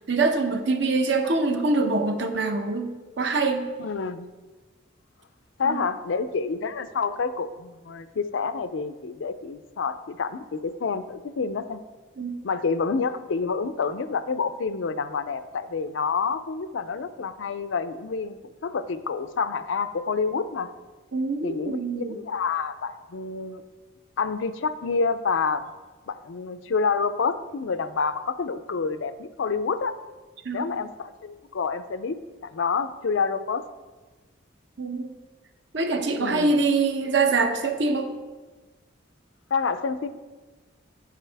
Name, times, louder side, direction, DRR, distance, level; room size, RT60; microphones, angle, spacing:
voice 1, 0.1-3.7 5.6-5.9 12.2-12.4 21.1-22.2 30.4-30.8 34.8-35.2 35.7-38.1, right 3 dB, 65° right, 6 dB, 0.8 m, -24 dB
voice 2, 3.8-4.3 5.6-11.8 12.4-20.7 21.4-23.6 24.2-25.6 26.1-30.0 30.5-32.2 32.4-33.6 36.2-36.5 39.5-40.1, left 5 dB, 75° left, 11 dB, 0.4 m, -28 dB
9.1 x 7.4 x 3.4 m, 1.3 s
head